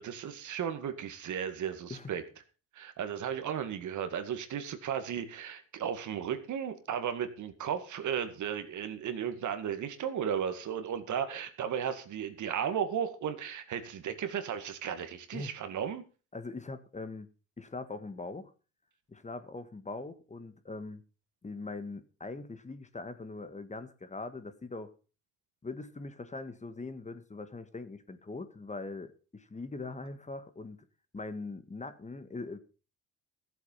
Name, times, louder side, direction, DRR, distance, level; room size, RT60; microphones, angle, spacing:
voice 1, 0.0-2.2 2.7-16.0, right 8 dB, 65° right, 2.2 m, -35 dB
voice 2, 16.3-17.3 17.6-18.5 19.1-21.0 21.4-24.9 25.6-30.8 31.1-32.6, left 3 dB, 20° left, 1.7 m, -41 dB
14.0 x 8.0 x 5.7 m
supercardioid pair, 80°, 32 cm